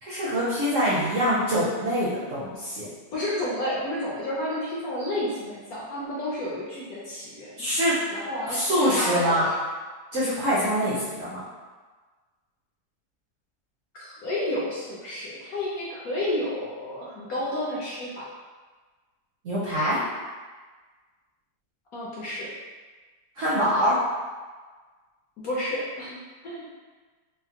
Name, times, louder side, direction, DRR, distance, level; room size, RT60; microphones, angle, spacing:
voice 1, 0.0-2.9 7.6-8.0 8.5-9.5 10.1-11.4 19.4-20.0 23.4-24.0, equal, 65° right, -9 dB, 0.8 m, -24 dB
voice 2, 3.1-7.6 8.1-9.4 13.9-18.3 21.9-22.5 25.4-26.2 26.4-26.7, left 1 dB, 65° left, -7 dB, 0.9 m, -31 dB
3.5 x 2.0 x 2.7 m, 1.4 s
omnidirectional pair, 1.9 m